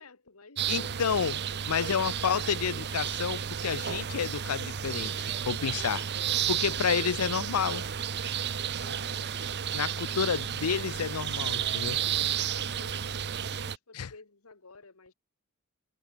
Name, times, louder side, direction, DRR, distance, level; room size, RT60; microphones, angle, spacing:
voice 1, 0.0-2.0 8.5-10.2 11.9-15.1, left 3 dB, 70° left, 2.0 m, -53 dB
sound 1, 0.6-13.8, right 8 dB, 50° right, 0.8 m, -32 dB
voice 2, 0.7-1.4 1.7-6.1 6.5-7.8 9.7-12.0 13.9-14.1, left 7 dB, 90° left, 0.6 m, -30 dB
head